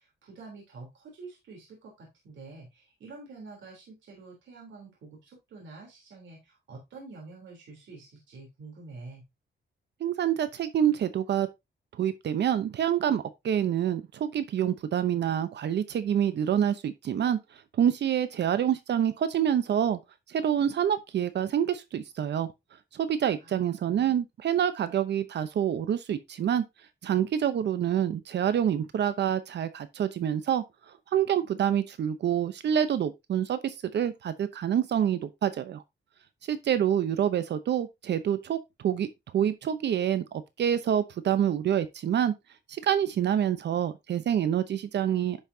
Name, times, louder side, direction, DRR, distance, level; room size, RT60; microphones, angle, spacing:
voice 1, 0.0-9.2 23.4-24.2, right 3 dB, 80° right, 3.4 m, -47 dB
voice 2, 10.0-11.5 12.0-17.4 17.8-20.0 20.3-22.5 22.9-26.6 27.0-30.6 31.1-35.8 36.5-39.1 39.3-42.3 42.7-45.4, right 9 dB, 65° right, 0.8 m, -27 dB
10.5 x 5.7 x 2.7 m
cardioid pair, 115°, 19 cm